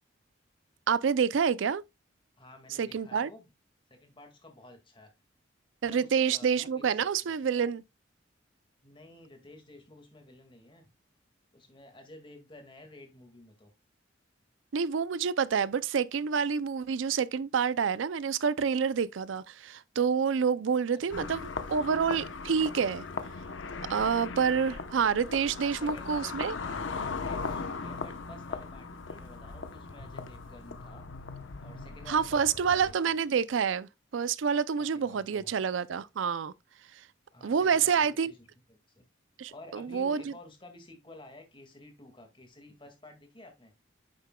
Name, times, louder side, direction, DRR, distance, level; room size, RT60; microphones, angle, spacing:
voice 1, 0.9-1.8 2.8-3.3 5.8-7.8 14.7-21.4 21.7-23.1 23.9-26.6 32.1-36.5 37.4-38.3 39.4-40.3, right 6 dB, 80° right, 0.4 m, -28 dB
voice 2, 2.4-3.5 3.9-5.1 5.8-7.3 8.8-10.9 11.5-13.7 21.1-21.3 25.5-31.1 31.6-33.1 34.9-35.5 37.3-39.0 39.5-43.7, left 1 dB, 25° left, 1.9 m, -52 dB
sound 1, 21.1-32.9, left 4 dB, 85° left, 0.8 m, -38 dB
9.6 x 6.7 x 2.2 m
head